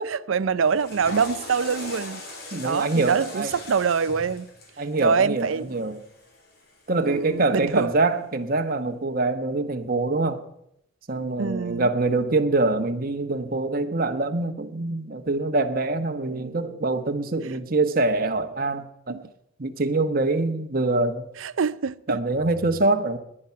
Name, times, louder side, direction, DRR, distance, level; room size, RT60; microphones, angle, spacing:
voice 1, 0.1-2.2 2.6-4.5 5.0-5.8 7.1-7.9 11.4-11.9 19.1-19.2 21.4-22.2, right 5 dB, 75° right, 0.5 m, -25 dB
Water / Toilet flush, 0.6-6.9, left 2 dB, 50° left, 3.2 m, -40 dB
voice 2, 2.5-3.5 4.8-6.0 6.9-10.4 11.1-19.1 19.6-21.3 22.1-23.2, right 2 dB, 45° right, 1.2 m, -24 dB
20.0 x 9.9 x 5.8 m
head